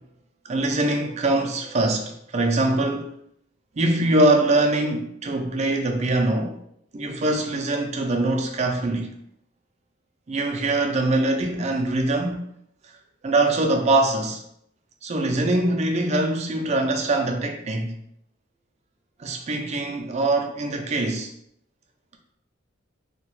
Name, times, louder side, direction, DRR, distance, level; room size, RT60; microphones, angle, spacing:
voice 1, 0.4-3.1 3.8-6.6 6.9-9.1 10.3-12.4 13.2-14.4 15.0-18.0 19.2-21.3, right 2 dB, 35° right, 0.4 m, -23 dB
2.8 x 2.2 x 3.0 m
head